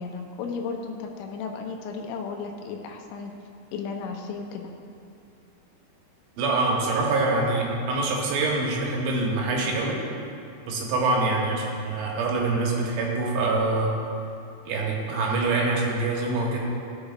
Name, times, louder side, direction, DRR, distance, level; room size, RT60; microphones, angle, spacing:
voice 1, 0.0-3.3 3.7-4.7, left 5 dB, 85° left, 2 dB, 3.1 m, -34 dB
voice 2, 6.4-10.0 10.7-13.9 14.7-16.6, right 3 dB, 80° right, -2 dB, 3.5 m, -25 dB
18.0 x 6.5 x 2.4 m, 2.5 s
omnidirectional pair, 5.4 m